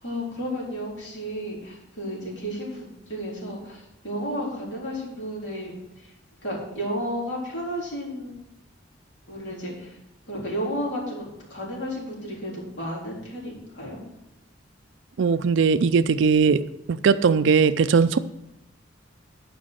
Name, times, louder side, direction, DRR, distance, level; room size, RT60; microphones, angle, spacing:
voice 1, 0.0-5.7 6.0-6.1 6.4-8.3 9.3-9.9 10.3-14.0, equal, 65° left, -4 dB, 3.8 m, -32 dB
voice 2, 15.2-16.6 16.9-18.2, right 5 dB, 70° right, 12 dB, 0.4 m, -19 dB
11.5 x 5.1 x 6.3 m, 0.87 s
head